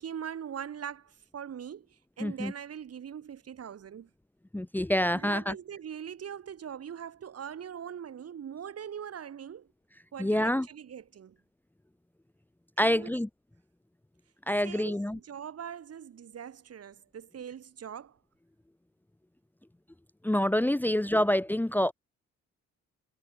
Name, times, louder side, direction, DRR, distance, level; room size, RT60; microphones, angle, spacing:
voice 1, 0.0-4.1 5.1-9.7 10.1-11.4 12.8-13.2 14.6-18.2, right 8 dB, 55° right, 3.2 m, -42 dB
voice 2, 2.2-2.5 4.5-5.5 10.2-10.7 12.8-13.3 14.5-15.2 20.2-21.9, left 1 dB, 5° left, 1.0 m, -27 dB
cardioid pair, 90°, 30 cm